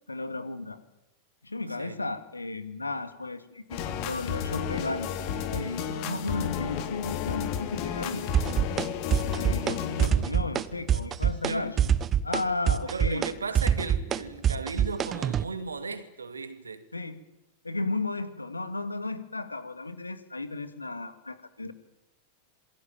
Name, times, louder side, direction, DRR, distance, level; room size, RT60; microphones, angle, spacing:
voice 1, 0.1-0.8 1.4-8.3 9.4-11.7 12.2-13.3 16.9-17.2 17.6-21.7, left 2 dB, 80° left, 2.0 m, -34 dB
sound 1, 3.7-10.1, left 8 dB, 45° left, 3.1 m, -32 dB
sound 2, 8.3-8.9 9.1-9.7 10.0-10.6 10.9-11.5 11.8-15.4, right 9 dB, 25° right, 1.2 m, -24 dB
voice 2, 11.4-12.0 12.8-16.9, right 4 dB, 75° right, 2.4 m, -36 dB
27.5 x 21.5 x 9.0 m
figure-of-eight pair, 90°, 0 cm